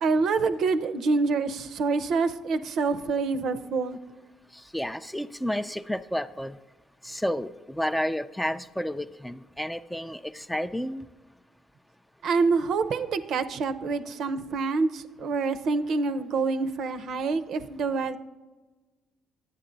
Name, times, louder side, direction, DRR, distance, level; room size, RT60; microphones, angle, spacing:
voice 1, 0.0-4.0 12.2-18.2, right 4 dB, 65° right, 10 dB, 0.6 m, -26 dB
voice 2, 4.5-6.6 7.0-11.1, equal, 5° left, 10 dB, 0.3 m, -31 dB
11.0 x 8.6 x 3.9 m, 1.2 s
cardioid pair, 90°, 0 cm